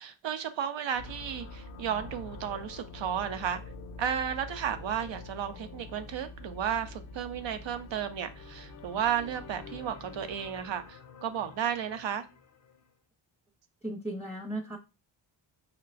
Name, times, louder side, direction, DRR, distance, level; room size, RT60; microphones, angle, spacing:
voice 1, 0.0-3.6 4.0-12.2, right 9 dB, 65° right, 9 dB, 0.7 m, -33 dB
sound 1, 0.9-12.9, left 3 dB, 40° left, 0.5 m, -46 dB
voice 2, 13.8-14.8, right 1 dB, 5° right, 1 dB, 0.7 m, -36 dB
5.7 x 2.2 x 2.5 m, 0.28 s
cardioid pair, 70°, 47 cm